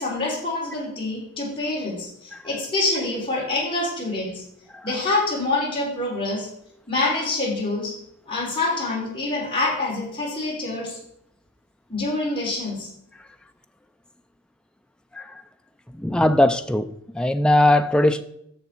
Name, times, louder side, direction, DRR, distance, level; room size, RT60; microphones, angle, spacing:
voice 1, 0.0-4.4 4.8-6.5 6.9-7.9 8.3-11.0 11.9-12.9, left 2 dB, 25° left, 3.7 m, -26 dB
voice 2, 16.0-18.2, left 1 dB, 5° left, 0.3 m, -19 dB
11.0 x 6.8 x 4.5 m
head